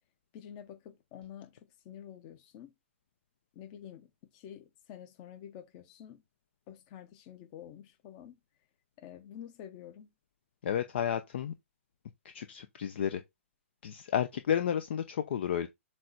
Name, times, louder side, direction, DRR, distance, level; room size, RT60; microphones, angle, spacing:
voice 1, 0.3-2.7 3.5-6.2 6.7-8.4 9.0-10.1, left 10 dB, 30° left, 1.2 m, -49 dB
voice 2, 10.6-11.5 12.3-13.2 13.8-15.7, left 9 dB, 50° left, 0.7 m, -31 dB
7.6 x 3.2 x 4.0 m
figure-of-eight pair, 125°, 7 cm